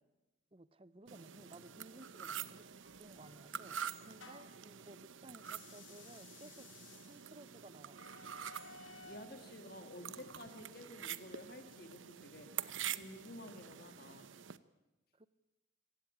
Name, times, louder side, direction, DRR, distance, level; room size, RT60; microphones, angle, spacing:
voice 1, 0.5-2.6 3.0-6.7 7.1-8.0 15.1-15.3, right 2 dB, 30° right, 16 dB, 0.7 m, -57 dB
sound 1, 1.1-14.6, right 9 dB, 80° right, 0.9 m, -47 dB
sound 2, 2.8-4.7 5.4-9.3, left 4 dB, 75° left, 2.4 m, -58 dB
voice 2, 8.7-14.3, left 1 dB, 50° left, 6 dB, 1.8 m, -52 dB
25.5 x 16.5 x 8.8 m, 1.0 s
head